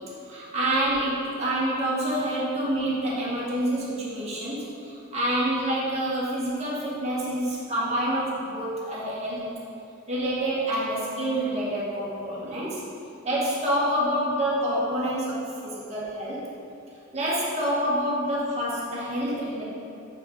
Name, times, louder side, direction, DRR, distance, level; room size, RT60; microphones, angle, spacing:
voice 1, 0.3-9.5 10.1-12.8 13.2-16.4 17.1-19.6, right 1 dB, 30° right, -7 dB, 1.7 m, -27 dB
7.1 x 4.9 x 4.8 m, 2.7 s
head